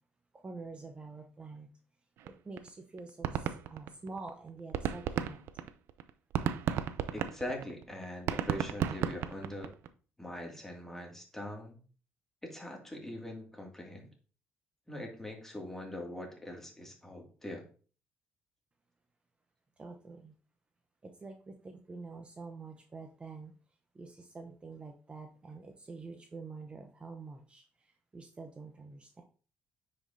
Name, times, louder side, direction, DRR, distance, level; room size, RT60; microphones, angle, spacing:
voice 1, 0.3-1.7 2.2-5.7 19.8-20.3 21.0-23.5 23.9-29.2, right 3 dB, 25° right, 4 dB, 0.8 m, -47 dB
sound 1, 2.3-2.4 2.6-2.7 3.0-4.3 4.6-9.9, right 9 dB, 75° right, 0.5 m, -33 dB
voice 2, 7.1-9.7 10.2-11.8 12.4-14.1 14.9-17.6, left 1 dB, 10° left, 0 dB, 2.3 m, -42 dB
9.6 x 5.1 x 2.7 m, 0.39 s
cardioid pair, 95°, 4 cm